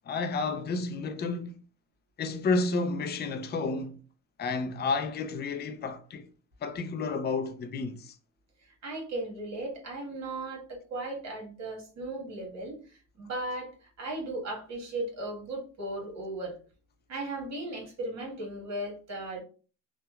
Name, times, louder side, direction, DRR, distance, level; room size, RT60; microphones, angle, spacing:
voice 1, 0.1-1.6 2.2-4.0 4.4-6.3 6.6-8.2, left 3 dB, 35° left, 0.4 m, -31 dB
voice 2, 8.6-16.6 17.1-19.4, right 2 dB, 60° right, 1.4 m, -37 dB
2.8 x 2.2 x 2.3 m
cardioid pair, 90°, 30 cm